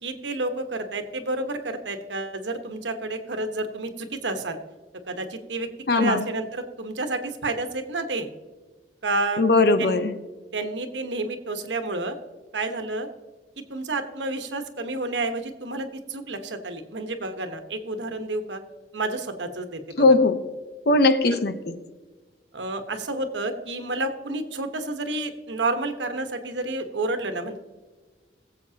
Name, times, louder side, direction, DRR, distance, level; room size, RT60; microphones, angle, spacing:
voice 1, 0.0-4.6 5.1-8.3 9.0-9.4 9.8-10.0 10.5-12.2 12.5-13.1 13.7-18.6 18.9-20.2 22.5-27.6, right 2 dB, 85° right, 7 dB, 1.3 m, -30 dB
voice 2, 5.9-6.2 9.4-10.1 20.0-20.4 20.9-21.6, left 3 dB, 60° left, 10 dB, 0.9 m, -19 dB
21.5 x 8.0 x 2.9 m, 1.3 s
head